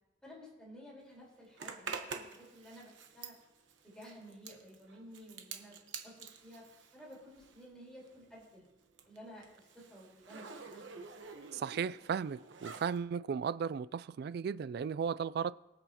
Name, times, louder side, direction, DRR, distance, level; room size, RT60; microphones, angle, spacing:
voice 1, 0.2-3.4 3.8-5.8 6.0-6.7 6.9-8.7 9.0-11.1, equal, 5° left, 4.3 m, -53 dB
Zipper (clothing), 1.6-7.7 8.0-13.0, right 5 dB, 90° right, 1.1 m, -48 dB
voice 2, 11.5-15.5, right 6 dB, 60° right, 0.3 m, -35 dB
22.0 x 7.9 x 2.9 m
head